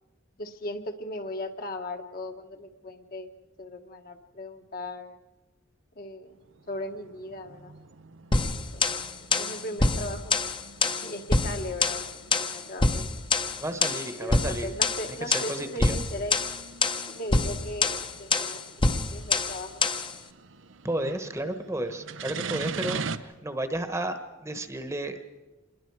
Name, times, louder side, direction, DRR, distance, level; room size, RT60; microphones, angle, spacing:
voice 1, 0.4-3.3 3.6-5.2 5.9-6.4 6.7-7.8 8.4-8.8 9.4-10.4 11.0-13.1 14.2-16.4 17.1-19.8, left 1 dB, 50° left, 4 dB, 1.3 m, -38 dB
sound 1, 6.3-23.2, right 5 dB, 85° right, 0.8 m, -43 dB
sound 2, 8.3-20.1, left 3 dB, 25° left, 0.9 m, -26 dB
voice 2, 13.6-14.7 15.3-16.0 20.8-25.2, right 1 dB, 15° right, 8 dB, 1.1 m, -32 dB
27.0 x 21.5 x 4.7 m, 1.2 s
head